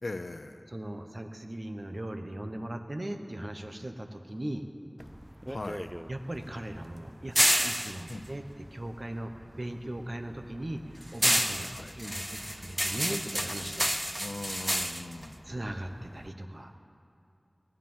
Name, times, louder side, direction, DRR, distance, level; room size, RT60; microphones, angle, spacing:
voice 1, 0.0-0.7 5.5-5.9 8.1-8.3 11.7-11.9 14.2-15.4, left 2 dB, 85° left, 9 dB, 0.6 m, -40 dB
voice 2, 0.7-4.7 6.1-7.4 7.6-8.4 8.7-13.8 15.5-16.8, right 1 dB, 50° right, 6 dB, 1.0 m, -38 dB
sound 1, 5.0-9.5 9.8-16.3, equal, 5° right, 0.3 m, -31 dB
17.0 x 10.5 x 5.6 m, 2.6 s
wide cardioid pair, 50°, 0 cm